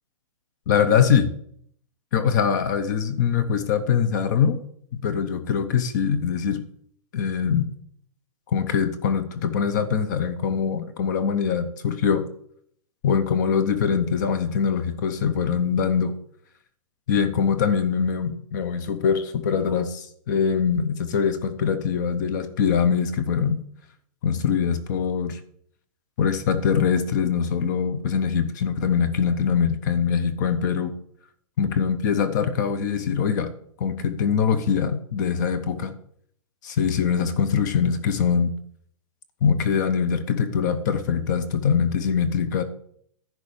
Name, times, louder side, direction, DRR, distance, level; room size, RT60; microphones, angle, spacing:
voice 1, 0.7-1.3 2.1-4.6 4.9-6.6 7.1-7.7 8.5-12.2 13.0-16.1 17.1-23.6 24.2-25.4 26.2-30.9 31.6-33.5 33.8-35.9 36.6-38.5 39.4-42.6, left 7 dB, 30° left, 11 dB, 0.7 m, -23 dB
10.5 x 4.0 x 7.1 m, 0.66 s
hypercardioid pair, 170°, 18 cm